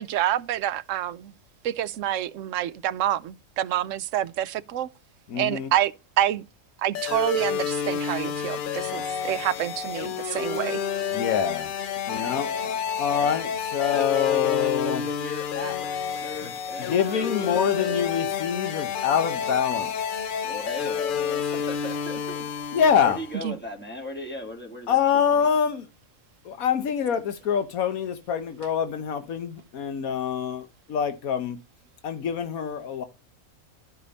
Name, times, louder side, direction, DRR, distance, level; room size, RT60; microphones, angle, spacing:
voice 1, 0.0-1.3 1.6-4.9 5.4-6.4 6.8-10.8 23.4-23.5, right 12 dB, 70° right, 0.9 m, -27 dB
voice 2, 5.3-5.7 11.1-11.7 12.1-12.5 13.0-15.0 16.9-19.9 22.7-23.2 24.9-25.8 26.4-31.6 32.0-33.0, left 8 dB, 90° left, 1.4 m, -25 dB
sound 1, 7.0-23.4, left 7 dB, 65° left, 0.5 m, -30 dB
voice 3, 12.1-12.8 13.1-13.4 13.9-15.8 16.1-18.1 20.4-22.5 23.0-25.5, left 1 dB, 5° left, 2.3 m, -38 dB
12.5 x 5.1 x 4.1 m
omnidirectional pair, 1.4 m